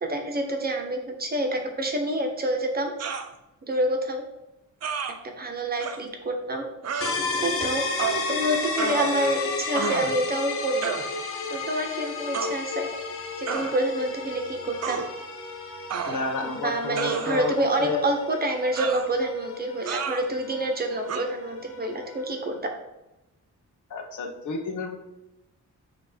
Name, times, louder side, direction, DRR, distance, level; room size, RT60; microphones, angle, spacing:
voice 1, 0.0-2.9 3.6-4.2 5.3-6.6 7.4-7.8 8.3-10.9 11.5-12.9 13.4-15.0 16.4-22.5, right 1 dB, 30° right, 3 dB, 1.0 m, -27 dB
sound 1, 3.0-3.3 4.8-5.1 5.8-6.0 6.8-7.2 8.0-8.3 8.8-9.4 9.7-10.2 10.8-11.1 12.3-12.5 13.5-13.7 14.8-15.1 15.9-16.4 17.0-17.6 18.8-19.1 19.9-20.3 21.1-21.2, right 6 dB, 55° right, 0.7 m, -30 dB
sound 2, 7.0-22.6, left 4 dB, 45° left, 0.8 m, -33 dB
voice 2, 16.1-18.0 23.9-25.0, left 4 dB, 70° left, 3 dB, 1.2 m, -31 dB
7.1 x 3.2 x 5.1 m, 0.95 s
wide cardioid pair, 155°, 31 cm